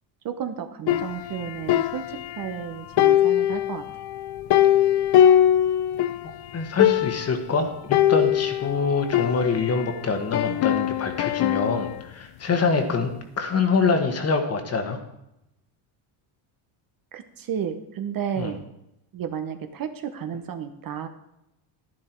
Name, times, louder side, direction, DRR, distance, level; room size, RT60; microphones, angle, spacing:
voice 1, 0.2-3.8 10.5-10.6 12.6-13.1 17.1-18.6 19.1-21.1, right 8 dB, 45° right, 8 dB, 1.1 m, -32 dB
sound 1, 0.9-2.6 3.0-6.3 6.5-6.6 6.8-7.4 7.9-9.9 10.3-12.0, left 11 dB, 55° left, 0.6 m, -22 dB
voice 2, 6.5-13.1 13.4-15.0 18.4-18.5, left 4 dB, 30° left, 7 dB, 1.5 m, -25 dB
11.0 x 10.5 x 4.5 m, 0.85 s
cardioid pair, 130°, 48 cm